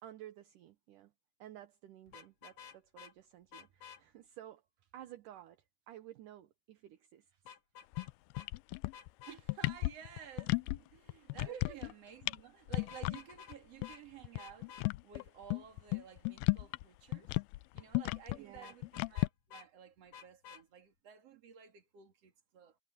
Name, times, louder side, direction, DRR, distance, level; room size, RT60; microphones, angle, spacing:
voice 1, 0.0-1.1 1.4-4.6 4.9-7.5 11.5-11.8 18.3-18.7, right 13 dB, 70° right, 2.2 m, -53 dB
Vehicle horn car horn honking, 2.1-3.1 3.5-4.0 7.5-8.1 8.3-8.5 8.9-9.4 12.8-13.6 13.8-14.0 14.4-14.9 18.6-19.7 20.1-20.6, left 8 dB, 55° left, 2.7 m, -52 dB
sound 1, 7.9-8.1 8.4-9.1 9.4-10.8 11.1-11.9 12.2-12.4 12.7-13.2 13.5-13.6 13.8-13.9 14.2-16.8 17.1-19.3, left 23 dB, 85° left, 2.1 m, -34 dB
voice 2, 9.3-17.4 17.7-22.8, right 8 dB, 45° right, 3.0 m, -53 dB
omnidirectional pair, 4.8 m